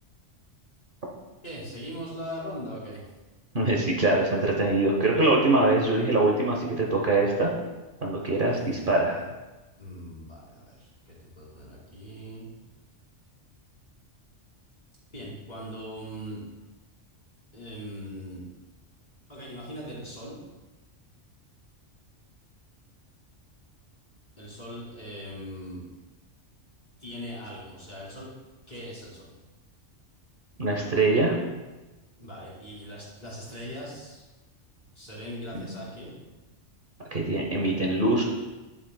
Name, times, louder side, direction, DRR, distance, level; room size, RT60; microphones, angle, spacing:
voice 1, 1.4-3.0 8.4-9.2 9.8-12.5 15.1-16.4 17.5-18.4 19.3-20.4 24.4-25.8 27.0-28.3 28.7-29.3 32.2-34.2 34.9-36.1, equal, 40° left, -5 dB, 2.8 m, -40 dB
voice 2, 3.5-7.5 8.0-9.1 30.6-31.4 35.5-35.7 37.1-38.2, right 2 dB, 45° right, -1 dB, 1.1 m, -23 dB
10.5 x 7.4 x 2.3 m, 1.1 s
omnidirectional pair, 1.2 m